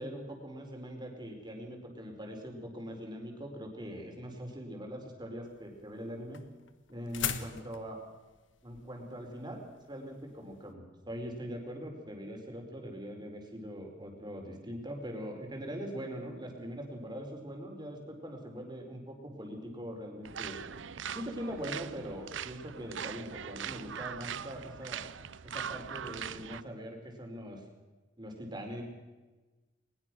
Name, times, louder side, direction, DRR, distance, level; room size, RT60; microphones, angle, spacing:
voice 1, 0.0-6.4 6.9-8.0 8.6-9.6 9.9-20.6 21.1-25.0 25.4-27.6 28.2-28.8, equal, 25° right, 2 dB, 4.5 m, -42 dB
sound 1, 5.5-10.7, left 8 dB, 80° left, 1.5 m, -40 dB
sound 2, 20.2-26.6, right 8 dB, 80° right, 0.7 m, -41 dB
21.0 x 20.5 x 6.2 m, 1.2 s
head